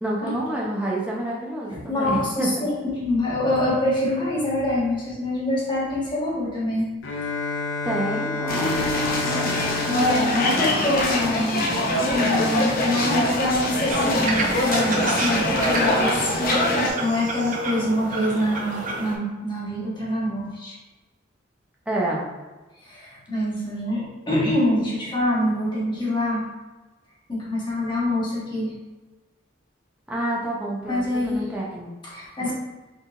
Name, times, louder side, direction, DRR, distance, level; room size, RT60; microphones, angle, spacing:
voice 1, 0.0-2.5 7.8-8.8 21.9-22.2 30.1-31.9 32.4-32.5, right 1 dB, 5° right, -4 dB, 0.8 m, -28 dB
voice 2, 1.7-6.9 9.9-11.8 12.1-20.8 22.8-26.4 27.3-28.7 30.9-31.4 32.0-32.5, left 1 dB, 25° left, -7 dB, 1.4 m, -25 dB
Bowed string instrument, 7.0-11.8, left 3 dB, 90° left, 0.5 m, -30 dB
sound 1, 8.5-16.9, left 1 dB, 50° left, 0.7 m, -23 dB
sound 2, 13.9-19.2, right 2 dB, 45° right, 0.7 m, -30 dB
4.1 x 3.7 x 2.6 m, 1.2 s
head